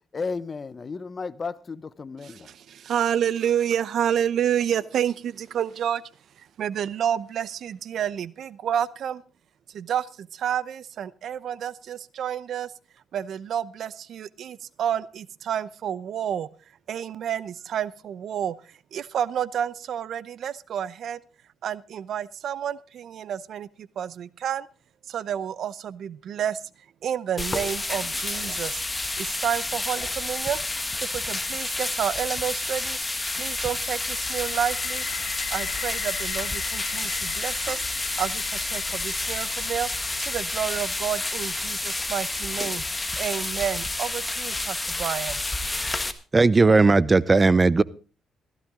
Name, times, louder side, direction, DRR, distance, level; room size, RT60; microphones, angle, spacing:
voice 1, 0.1-2.5, left 4 dB, 35° left, 17 dB, 0.9 m, -33 dB
voice 2, 2.2-6.0 6.4-9.2 9.7-12.7 13.1-16.5 16.9-18.6 18.9-21.2 21.6-24.7 25.1-26.6 27.0-28.8 29.2-30.6 31.0-33.0 33.4-35.1 35.5-39.9 40.2-42.8 43.2-45.4, right 9 dB, 65° right, 19 dB, 0.7 m, -29 dB
sound 1, 27.4-46.1, left 2 dB, 15° left, 1.5 m, -30 dB
sound 2, 33.2-45.1, left 9 dB, 85° left, 2.3 m, -41 dB
voice 3, 45.8-46.1 46.3-47.8, right 3 dB, 25° right, 20 dB, 0.7 m, -18 dB
15.5 x 14.5 x 3.7 m, 0.35 s
cardioid pair, 90°, 0 cm